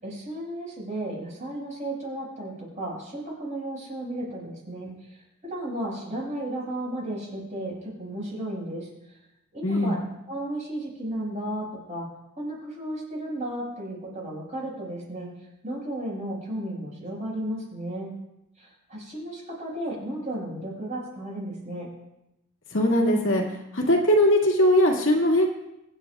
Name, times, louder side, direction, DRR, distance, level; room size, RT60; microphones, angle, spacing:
voice 1, 0.0-9.2 9.5-10.0 10.3-12.1 12.4-15.3 15.6-18.1 18.6-21.9, right 1 dB, 35° right, -3 dB, 5.3 m, -34 dB
voice 2, 9.6-9.9 22.7-23.4 23.7-25.5, left 1 dB, 60° left, -1 dB, 2.1 m, -20 dB
24.0 x 9.1 x 2.4 m, 0.89 s
head